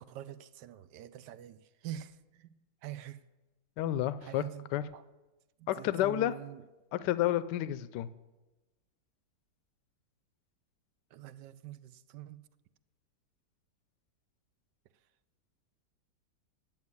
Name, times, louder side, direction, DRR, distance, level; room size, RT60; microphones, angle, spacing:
voice 1, 0.0-1.6 1.8-2.5 2.8-3.2 4.2-4.6 4.9-5.0 5.6-6.6 11.1-12.4, right 12 dB, 80° right, 15 dB, 1.2 m, -45 dB
voice 2, 3.8-4.4 4.7-4.8 5.7-6.3 6.9-8.1, left 13 dB, 80° left, 15 dB, 1.2 m, -30 dB
10.5 x 7.3 x 9.6 m, 1.1 s
omnidirectional pair, 1.9 m